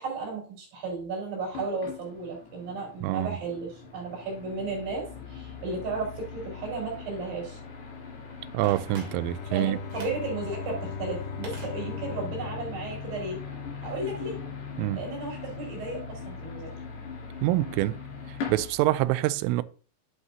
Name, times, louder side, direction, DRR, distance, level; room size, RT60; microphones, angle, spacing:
voice 1, 0.0-7.6 9.5-13.4 13.8-14.4 14.9-16.7, right 3 dB, 55° right, 6.5 m, -34 dB
sound 1, 1.5-19.1, left 5 dB, 60° left, 5.5 m, -41 dB
voice 2, 3.0-3.4 8.5-9.8 14.8-15.0 17.4-18.0 18.5-19.6, right 16 dB, 85° right, 3.1 m, -26 dB
Telephone, 8.6-9.5 9.9-10.3 11.4-12.3 12.6-12.7, right 1 dB, 30° right, 2.6 m, -44 dB
Bowed string instrument, 8.9-14.1, left 6 dB, 75° left, 3.8 m, -39 dB
11.0 x 8.0 x 2.8 m
omnidirectional pair, 5.8 m